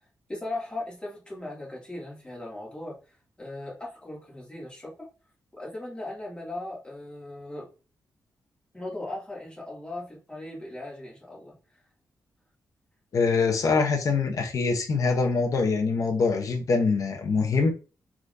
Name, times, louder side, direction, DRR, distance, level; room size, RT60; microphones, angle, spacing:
voice 1, 0.3-5.1 5.5-7.7 8.7-11.5, left 2 dB, 15° left, 2.3 m, -38 dB
voice 2, 13.1-17.7, left 4 dB, 55° left, 0.8 m, -24 dB
4.5 x 3.7 x 2.6 m
wide cardioid pair, 130°, 7 cm